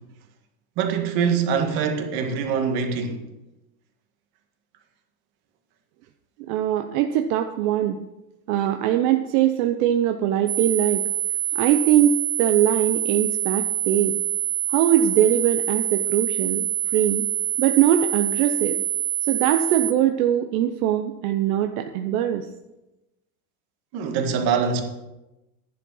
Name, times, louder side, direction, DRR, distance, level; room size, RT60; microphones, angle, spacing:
voice 1, 0.8-3.2 23.9-24.8, right 6 dB, 60° right, 1.9 m, -24 dB
voice 2, 6.5-8.0 8.5-11.0 11.5-14.2 14.7-17.2 17.6-18.8 19.3-22.5, right 11 dB, 80° right, 0.8 m, -21 dB
sound 1, 10.5-19.9, right 11 dB, 35° right, 0.4 m, -26 dB
11.0 x 7.6 x 5.5 m
supercardioid pair, 140°, 42 cm